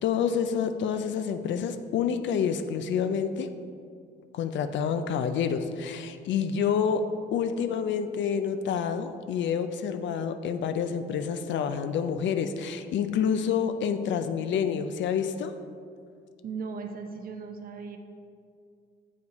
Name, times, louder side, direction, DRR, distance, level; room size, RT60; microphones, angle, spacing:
voice 1, 0.0-3.5 4.3-15.5, left 7 dB, 70° left, 9 dB, 0.4 m, -28 dB
voice 2, 16.4-18.0, right 5 dB, 45° right, 5 dB, 0.6 m, -37 dB
7.0 x 5.0 x 4.0 m, 2.3 s
cardioid pair, 90°, 20 cm